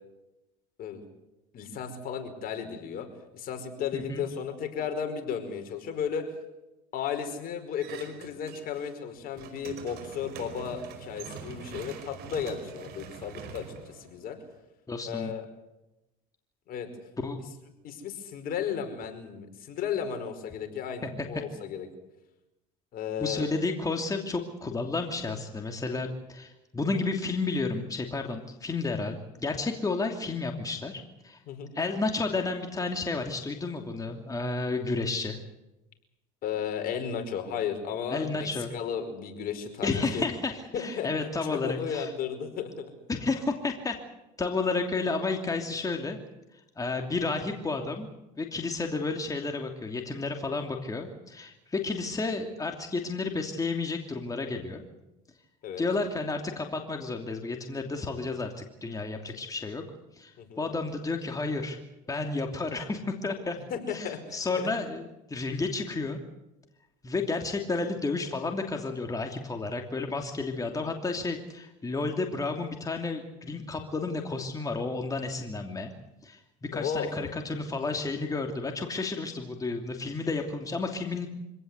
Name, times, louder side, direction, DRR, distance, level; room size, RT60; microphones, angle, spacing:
voice 1, 1.5-3.1 3.3-6.4 6.9-14.4 15.0-15.4 16.7-16.9 17.8-21.9 22.9-23.5 31.5-31.7 36.4-40.2 40.7-41.1 41.5-42.9 55.6-55.8 60.4-60.6 63.7-64.4 76.7-77.1, left 7 dB, 55° left, 6 dB, 5.1 m, -34 dB
voice 2, 3.9-4.2 14.9-15.3 17.2-17.4 23.2-31.4 31.7-35.4 38.1-38.7 39.8-42.1 43.1-44.0 44.4-46.2 46.5-48.1 48.4-54.8 55.8-59.8 60.1-61.8 62.1-63.6 63.9-66.2 67.0-75.9 76.2-76.4 76.7-81.3, left 3 dB, 20° left, 3 dB, 2.9 m, -31 dB
sound 1, 7.8-8.9 9.2-14.6, right 7 dB, 60° right, 5.2 m, -44 dB
25.5 x 17.5 x 8.2 m, 0.95 s
supercardioid pair, 90°, 18 cm